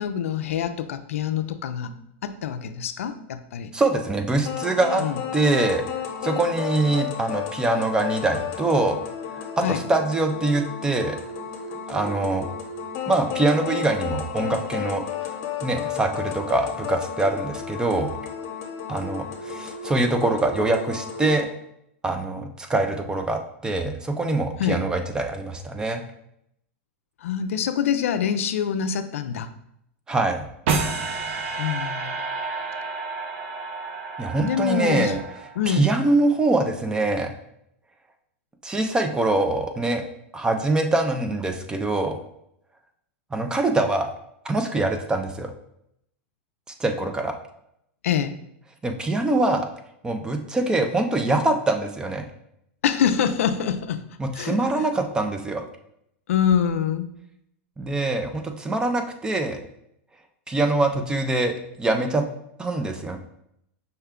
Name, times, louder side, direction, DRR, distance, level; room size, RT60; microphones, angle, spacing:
voice 1, 0.0-1.9 2.2-3.7 5.0-5.2 9.6-9.8 24.6-24.8 27.2-29.5 31.6-32.2 34.4-35.1 35.6-35.9 48.0-48.4 52.8-54.0 54.3-54.9 56.3-57.1, left 8 dB, 85° left, 9 dB, 0.4 m, -25 dB
voice 2, 3.7-5.0 5.3-5.8 6.2-9.0 9.3-11.2 11.9-12.5 13.1-15.0 15.6-18.1 18.9-21.5 22.0-26.0 30.1-30.4 34.2-35.2 35.7-37.3 38.6-40.0 40.3-42.2 43.3-44.1 44.4-45.5 46.8-47.4 48.8-49.7 50.0-52.3 54.2-55.6 57.8-59.6 60.5-62.2 62.6-63.2, right 2 dB, 10° right, 5 dB, 0.4 m, -24 dB
sound 1, 4.4-21.4, left 7 dB, 50° left, 0.9 m, -33 dB
sound 2, 30.7-35.9, right 4 dB, 65° right, 0.7 m, -30 dB
5.5 x 2.2 x 3.6 m, 0.76 s
supercardioid pair, 135°, 7 cm